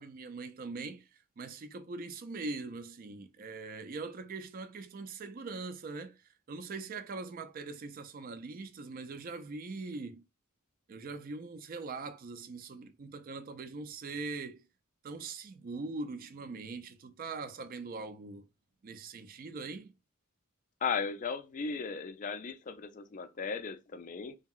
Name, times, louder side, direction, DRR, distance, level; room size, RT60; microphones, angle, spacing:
voice 1, 0.0-10.2 10.9-14.6 15.0-18.4 18.8-19.9, right 3 dB, 40° right, 0.4 m, -42 dB
voice 2, 20.8-24.4, left 5 dB, 35° left, 0.3 m, -36 dB
2.8 x 2.7 x 2.3 m
head